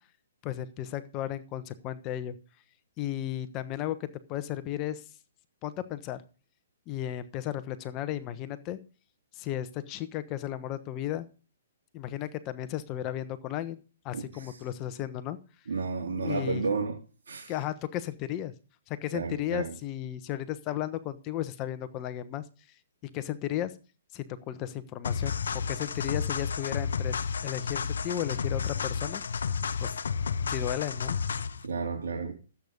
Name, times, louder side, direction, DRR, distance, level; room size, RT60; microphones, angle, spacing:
voice 1, 0.4-2.3 3.0-5.0 5.6-6.2 6.9-8.8 9.3-11.3 11.9-13.8 14.0-15.4 16.2-16.7 17.5-18.5 18.9-22.4 23.0-23.7 24.1-27.1 27.4-29.2 29.8-29.9 30.5-31.2, left 12 dB, 30° left, 12 dB, 1.1 m, -34 dB
voice 2, 14.1-14.6 15.7-17.0 17.3-17.5 19.1-19.7 31.6-32.3, right 4 dB, 80° right, 1 dB, 2.8 m, -32 dB
sound 1, 25.0-31.7, left 6 dB, 80° left, 1.0 m, -31 dB
13.5 x 8.3 x 5.2 m, 0.35 s
hypercardioid pair, 140°, 0 cm